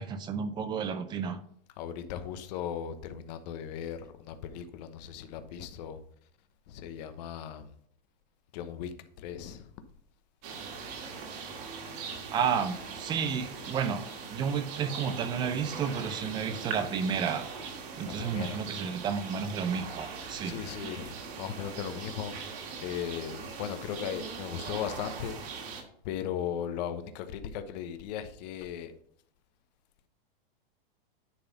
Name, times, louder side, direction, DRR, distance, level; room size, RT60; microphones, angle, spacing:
voice 1, 0.0-1.4 12.3-17.5 18.0-20.6, right 6 dB, 15° right, 0.4 m, -31 dB
voice 2, 1.8-6.0 6.7-7.7 8.5-9.7 18.0-18.6 20.3-22.4 22.8-25.4 26.0-28.9, left 9 dB, 45° left, 1.0 m, -37 dB
sound 1, 10.4-25.8, right 5 dB, 45° right, 2.2 m, -41 dB
10.5 x 3.9 x 5.6 m
hypercardioid pair, 145°, 29 cm